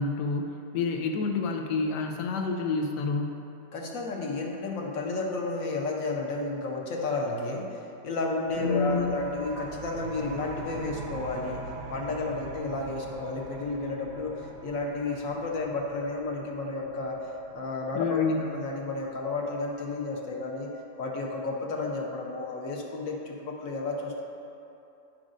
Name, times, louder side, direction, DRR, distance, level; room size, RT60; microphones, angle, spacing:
voice 1, 0.0-3.4 8.6-9.2 17.9-18.5, left 4 dB, 80° left, 3 dB, 1.3 m, -28 dB
voice 2, 3.7-7.8 8.0-11.6 11.9-17.2 17.5-24.2, left 3 dB, 60° left, 0 dB, 1.0 m, -32 dB
sound 1, 8.5-19.9, right 3 dB, 75° right, 1.2 m, -43 dB
9.7 x 6.2 x 2.5 m, 2.8 s
omnidirectional pair, 1.8 m